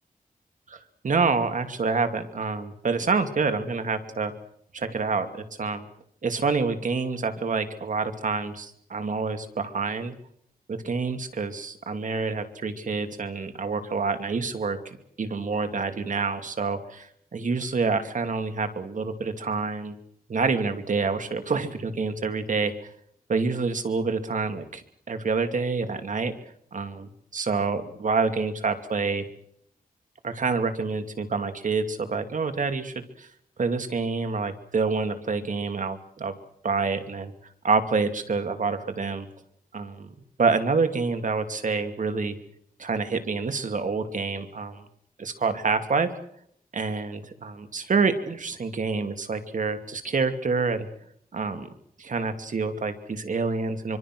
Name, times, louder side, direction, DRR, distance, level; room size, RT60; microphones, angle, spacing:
voice 1, 0.7-4.3 4.7-5.9 6.2-10.1 10.7-20.0 20.3-22.7 23.3-26.3 26.7-29.2 30.2-33.3 33.6-36.3 36.6-37.3 37.6-39.3 39.7-40.1 40.4-42.4 42.8-44.8 45.2-46.1 46.7-50.9 51.3-51.7 52.0-54.0, right 4 dB, 60° right, 8 dB, 2.7 m, -27 dB
25.5 x 25.0 x 6.2 m, 0.69 s
wide cardioid pair, 150°, 15 cm